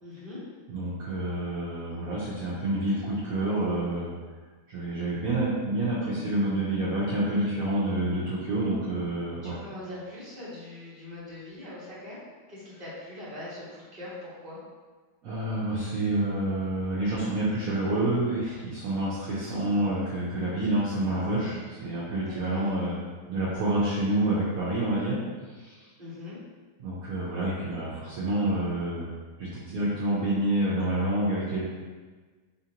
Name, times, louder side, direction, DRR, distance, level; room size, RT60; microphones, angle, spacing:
voice 1, 0.0-0.4 9.4-12.2 12.5-14.6 22.2-22.7 26.0-26.4, left 1 dB, 35° right, -9 dB, 1.3 m, -42 dB
voice 2, 0.7-4.1 4.7-9.6 15.2-22.9 23.3-25.2 25.6-25.9 26.8-29.0 29.4-31.6, right 1 dB, 65° right, -9 dB, 1.1 m, -28 dB
4.2 x 2.6 x 2.8 m, 1.4 s
omnidirectional pair, 1.8 m